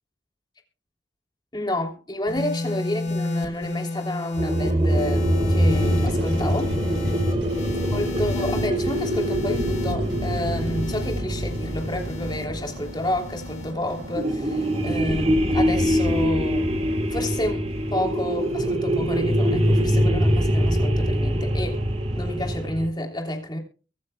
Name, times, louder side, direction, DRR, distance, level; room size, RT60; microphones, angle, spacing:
voice 1, 1.5-6.7 7.9-21.8 22.2-23.6, left 1 dB, 25° left, 3.2 m, -30 dB
sound 1, 2.3-18.8 19.7-20.0, left 3 dB, 40° left, 4.2 m, -34 dB
sound 2, 4.4-13.5 14.1-22.9, equal, 35° right, 1.8 m, -24 dB
sound 3, 5.7-22.7, right 1 dB, 65° right, 1.5 m, -39 dB
23.5 x 9.7 x 2.3 m
head